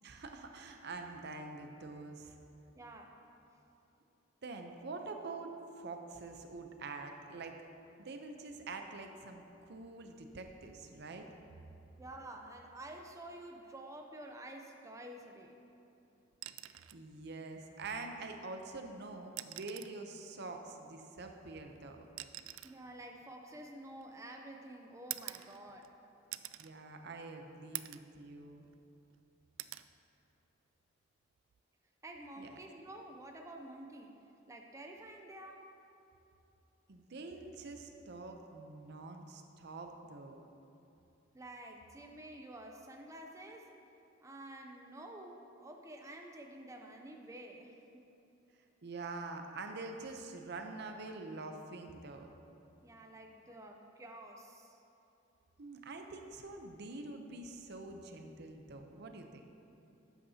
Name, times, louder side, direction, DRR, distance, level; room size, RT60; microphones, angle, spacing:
voice 1, 0.0-2.4 4.4-7.5 8.0-11.3 16.9-22.1 26.6-28.7 32.4-32.6 36.9-40.4 48.8-52.3 55.6-59.4, right 3 dB, 60° right, 4 dB, 0.7 m, -46 dB
voice 2, 2.8-3.2 12.0-15.5 22.6-25.9 32.0-34.1 34.5-35.7 41.3-43.7 44.2-48.0 52.8-54.8, right 1 dB, 15° right, 2 dB, 0.5 m, -50 dB
sound 1, 16.3-17.0 18.5-18.6 19.2-20.0 21.2-24.3 25.1-25.9 26.3-26.7 27.2-27.3 27.7-28.1 28.6-29.2 29.6-29.9 31.4-31.6, right 15 dB, 85° right, 0.3 m, -46 dB
12.0 x 8.5 x 2.8 m, 2.8 s
head